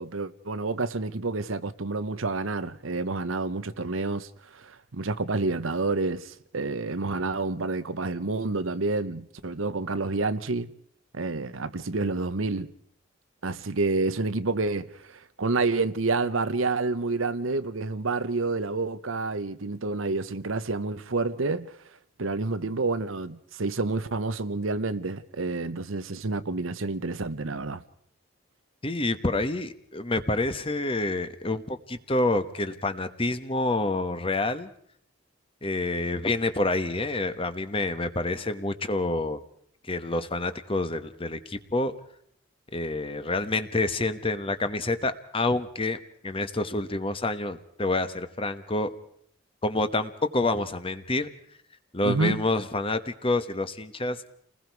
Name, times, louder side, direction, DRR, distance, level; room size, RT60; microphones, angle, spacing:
voice 1, 0.0-10.7 11.1-12.7 13.4-21.7 22.2-27.8 52.0-52.4, right 3 dB, 85° right, 1.0 m, -29 dB
voice 2, 28.8-34.7 35.6-39.4 39.9-41.9 42.7-48.9 49.6-51.3 51.9-54.2, left 2 dB, 25° left, 1.1 m, -28 dB
30.0 x 20.0 x 4.7 m
head